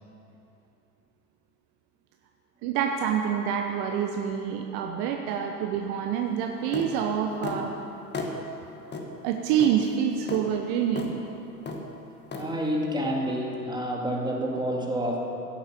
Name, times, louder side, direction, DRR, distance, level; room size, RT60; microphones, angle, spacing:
voice 1, 2.6-7.8 9.2-11.1, right 8 dB, 45° right, 3 dB, 1.0 m, -27 dB
sound 1, 6.7-6.9 7.4-7.6 8.1-8.3 8.9-9.1 9.6-9.8 10.3-10.4 11.0-11.1 11.7-11.8 12.3-12.5, left 3 dB, 20° left, 1.7 m, -33 dB
voice 2, 12.3-15.2, equal, 10° right, -2 dB, 2.3 m, -28 dB
16.5 x 7.8 x 7.2 m, 2.9 s
figure-of-eight pair, 80°, 49 cm